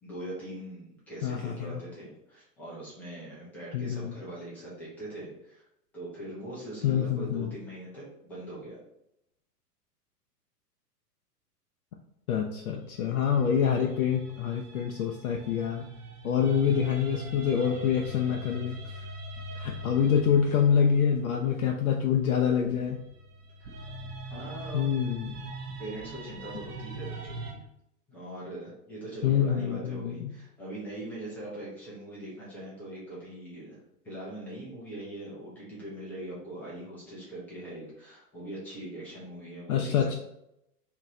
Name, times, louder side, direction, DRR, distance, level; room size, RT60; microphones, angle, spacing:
voice 1, 0.0-5.6 5.9-8.8 23.6-23.8 24.2-24.9 25.8-27.6 28.1-33.8 34.0-40.1, right 1 dB, 5° left, -8 dB, 0.4 m, -41 dB
voice 2, 1.2-1.8 3.7-4.1 6.8-7.5 12.3-15.8 16.2-18.8 19.6-23.0 24.7-25.5 29.2-30.1 39.7-40.2, left 8 dB, 65° left, 2 dB, 0.5 m, -26 dB
sound 1, 12.7-21.8 22.7-27.5, right 2 dB, 70° right, 1.0 m, -42 dB
3.0 x 2.5 x 3.8 m, 0.81 s
figure-of-eight pair, 105°, 47 cm